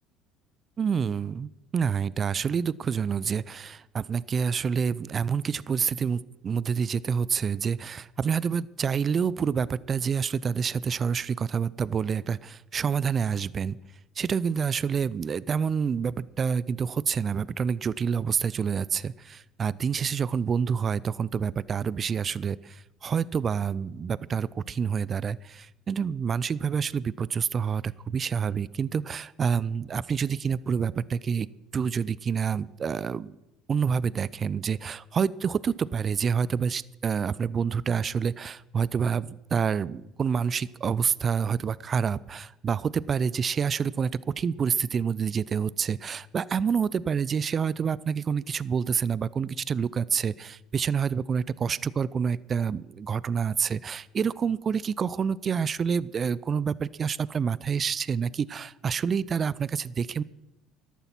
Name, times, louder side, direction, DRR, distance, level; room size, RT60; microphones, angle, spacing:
voice 1, 0.8-13.8 14.2-31.5 31.7-33.4 33.7-44.1 44.4-60.2, right 6 dB, 40° right, 21 dB, 0.5 m, -28 dB
14.0 x 12.0 x 5.9 m, 0.95 s
hypercardioid pair, 70°, 0 cm